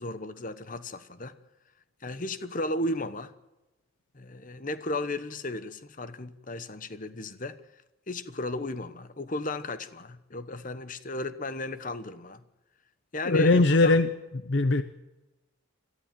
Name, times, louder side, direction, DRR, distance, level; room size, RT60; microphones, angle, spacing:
voice 1, 0.0-1.4 2.0-3.3 4.1-7.6 8.1-12.4 13.1-14.0, left 2 dB, 40° left, 1.1 m, -35 dB
voice 2, 13.3-14.1 14.5-14.8, left 2 dB, 55° left, 0.8 m, -20 dB
22.0 x 14.5 x 9.2 m
head